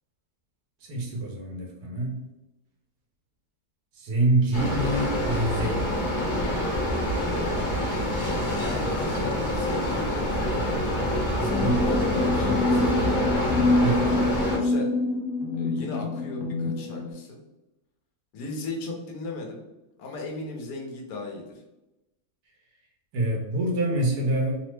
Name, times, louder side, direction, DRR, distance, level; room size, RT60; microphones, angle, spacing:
voice 1, 0.9-2.2 4.0-6.0 11.4-11.8 13.8-14.1 23.1-24.6, right 2 dB, 75° right, -1 dB, 1.3 m, -26 dB
sound 1, 4.5-14.6, equal, 40° left, 0.7 m, -26 dB
voice 2, 8.5-10.8 11.4-13.2 13.7-14.1 14.5-14.9 15.6-17.4 18.3-19.6 20.0-21.4, left 2 dB, 70° left, 0 dB, 1.1 m, -36 dB
sound 2, 11.5-17.1, left 2 dB, 85° left, 1.2 m, -26 dB
3.2 x 2.0 x 3.1 m, 0.98 s
omnidirectional pair, 1.8 m